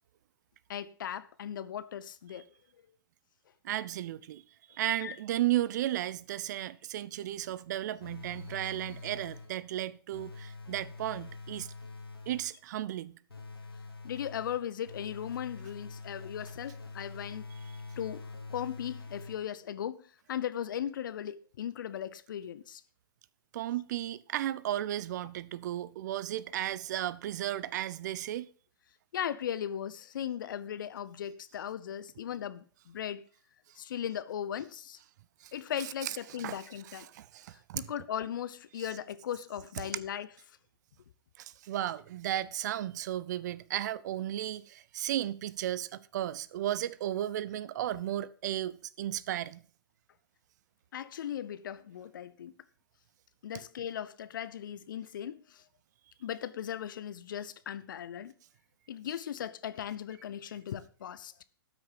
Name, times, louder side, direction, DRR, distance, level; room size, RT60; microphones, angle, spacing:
voice 1, 0.7-2.5 5.0-5.2 14.0-17.5 18.0-22.8 29.1-33.2 33.8-35.0 35.5-37.1 37.7-40.3 50.9-52.5 53.4-55.6 56.2-58.3 58.9-61.3, left 9 dB, 60° left, 0.9 m, -38 dB
voice 2, 3.6-4.4 4.7-11.7 12.3-13.2 23.5-28.5 36.0-36.6 37.1-37.9 41.4-49.6, right 13 dB, 50° right, 0.6 m, -34 dB
sound 1, 8.0-9.7 10.1-12.6 13.3-19.7, left 3 dB, 85° left, 2.5 m, -45 dB
13.0 x 6.2 x 5.5 m
figure-of-eight pair, 115°, 12 cm